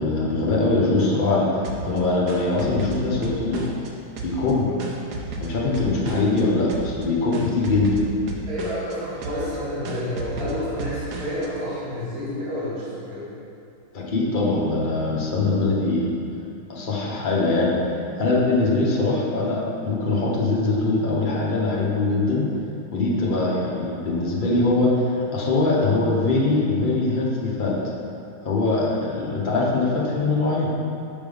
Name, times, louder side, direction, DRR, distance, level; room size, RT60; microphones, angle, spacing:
voice 1, 0.0-1.5 1.8-3.7 4.2-4.7 5.4-8.0 13.9-16.1 16.7-17.8 18.2-22.5 22.9-27.8 28.4-30.7, left 3 dB, 60° left, -5 dB, 0.5 m, -22 dB
sound 1, 1.6-3.9 4.2-6.4 6.7-7.0 7.3-8.9 9.2-9.6 9.8-11.5, right 3 dB, 65° right, 1.0 m, -34 dB
voice 2, 8.4-13.2, left 1 dB, 20° right, -10 dB, 1.2 m, -29 dB
5.7 x 3.5 x 5.3 m, 2.6 s
omnidirectional pair, 2.2 m